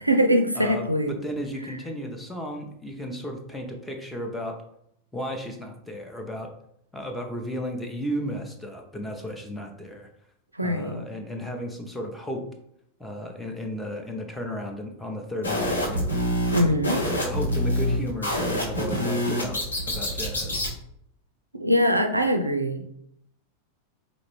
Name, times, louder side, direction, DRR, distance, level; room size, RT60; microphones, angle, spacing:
voice 1, 0.0-1.1 10.5-11.0 16.5-17.0 21.5-22.9, equal, 85° right, 6 dB, 0.4 m, -22 dB
voice 2, 0.5-4.6 5.1-6.5 6.9-10.1 10.6-12.5 13.0-16.0 16.5-16.7 17.2-20.7, equal, 5° left, 3 dB, 0.7 m, -34 dB
sound 1, 15.4-20.7, equal, 75° left, 1.3 m, -26 dB
4.9 x 2.6 x 3.1 m, 0.72 s
figure-of-eight pair, 90°, 0 cm